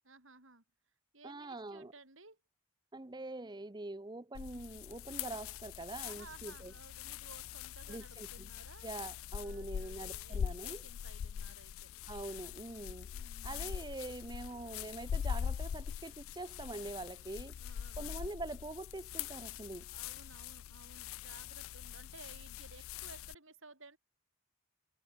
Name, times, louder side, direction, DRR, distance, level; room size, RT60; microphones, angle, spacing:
voice 1, 0.0-0.6 1.1-2.4 6.0-8.9 9.3-11.9 13.1-13.8 17.6-18.3 19.9-24.0, right 3 dB, 75° right, 7.8 m, -57 dB
voice 2, 1.2-1.9 2.9-6.7 7.9-8.5 8.8-10.8 12.1-13.1 13.4-17.6 17.9-19.9, right 2 dB, 20° right, 0.7 m, -44 dB
sound 1, 4.3-23.3, left 8 dB, 85° left, 0.3 m, -43 dB
head